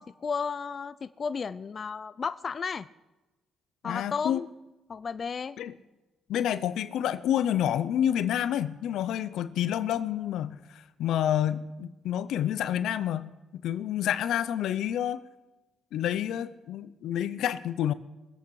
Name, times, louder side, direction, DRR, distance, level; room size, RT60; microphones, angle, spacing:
voice 1, 0.0-2.9 3.8-4.5 4.9-5.6, left 5 dB, 40° left, 13 dB, 0.5 m, -33 dB
voice 2, 3.8-4.4 5.6-5.7 6.3-10.6 11.0-15.2 15.9-17.9, left 10 dB, 80° left, 14 dB, 0.7 m, -28 dB
21.5 x 8.4 x 4.8 m, 1.1 s
cardioid pair, 90°, 0 cm